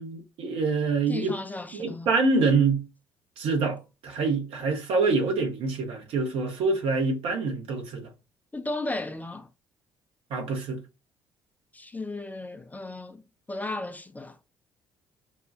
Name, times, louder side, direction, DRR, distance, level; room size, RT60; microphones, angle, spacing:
voice 1, 0.0-1.3 1.7-2.9 3.4-8.1 10.3-10.8, right 4 dB, 60° right, 1.0 m, -26 dB
voice 2, 1.1-2.1 8.5-9.5 11.7-13.2 13.5-14.4, left 2 dB, 15° left, 0.6 m, -34 dB
5.4 x 2.3 x 2.5 m
figure-of-eight pair, 45°, 11 cm